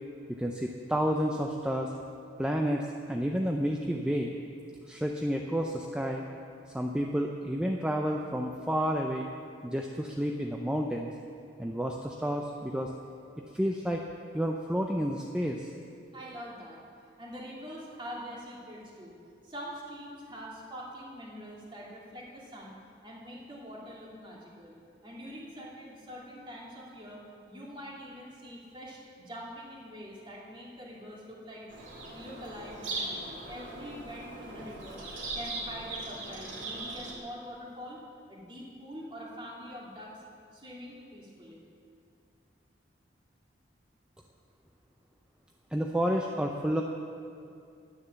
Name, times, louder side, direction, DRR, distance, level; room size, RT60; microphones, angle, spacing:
voice 1, 0.4-1.9 2.4-4.4 4.9-6.2 6.7-9.3 9.6-11.1 11.6-12.9 13.5-14.0 14.3-15.7 45.7-46.8, equal, 5° right, 1 dB, 0.5 m, -30 dB
voice 2, 16.1-16.8 17.2-19.1 19.4-22.7 23.0-24.8 25.0-31.7 32.1-35.1 35.3-38.0 38.3-40.1 40.5-41.6, equal, 25° right, -4 dB, 2.2 m, -44 dB
Bird vocalization bird call bird song, 31.7-37.1, right 2 dB, 85° right, 2.5 m, -39 dB
9.9 x 9.9 x 7.0 m, 2.4 s
head